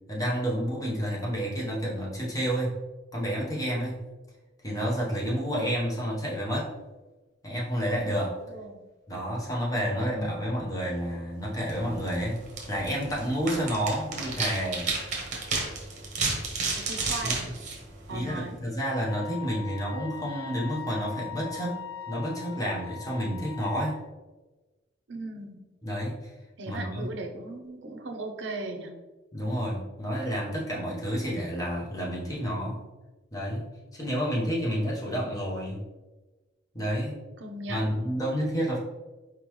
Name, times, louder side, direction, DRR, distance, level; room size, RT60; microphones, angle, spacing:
voice 1, 0.1-2.8 3.1-4.0 4.6-6.7 7.4-8.4 9.1-14.9 17.2-17.3 18.1-24.0 25.8-26.3 26.7-27.1 29.3-32.8 33.3-35.8 36.7-37.2 37.7-38.8, equal, 20° left, -4 dB, 0.9 m, -30 dB
voice 2, 8.5-8.8 16.7-17.5 18.1-18.6 25.1-25.6 26.6-28.9 37.4-37.9, right 2 dB, 65° right, 4 dB, 0.6 m, -37 dB
sound 1, 11.6-18.5, right 3 dB, 40° right, 1.0 m, -33 dB
Wind instrument woodwind instrument, 19.0-24.0, left 9 dB, 80° left, 0.5 m, -41 dB
4.6 x 3.8 x 3.1 m, 1.2 s
head